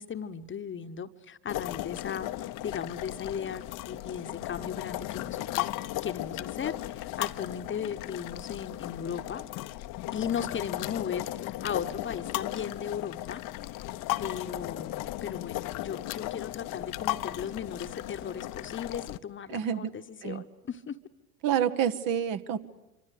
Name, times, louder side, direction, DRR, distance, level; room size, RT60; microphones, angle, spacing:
voice 1, 0.0-9.4 10.1-13.4 14.2-21.0, left 7 dB, 25° left, 10 dB, 1.2 m, -37 dB
sound 1, 1.5-19.2, left 16 dB, 45° left, 0.9 m, -36 dB
voice 2, 19.5-19.9 20.2-20.4 21.4-22.6, right 9 dB, 50° right, 11 dB, 1.3 m, -28 dB
26.0 x 25.0 x 8.4 m, 0.97 s
hypercardioid pair, 75°, 45 cm